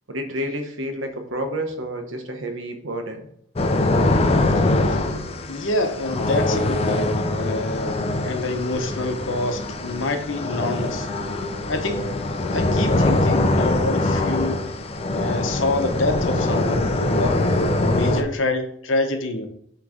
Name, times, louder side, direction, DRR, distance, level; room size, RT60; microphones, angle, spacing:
voice 1, 0.1-3.2, equal, 85° right, 5 dB, 1.0 m, -29 dB
sound 1, 3.6-18.2, left 2 dB, 30° left, 0.5 m, -23 dB
voice 2, 4.4-5.1 5.5-11.1 11.7-12.1 12.5-14.6 15.1-19.5, left 2 dB, 85° left, 6 dB, 0.9 m, -27 dB
6.0 x 3.2 x 5.0 m, 0.69 s
head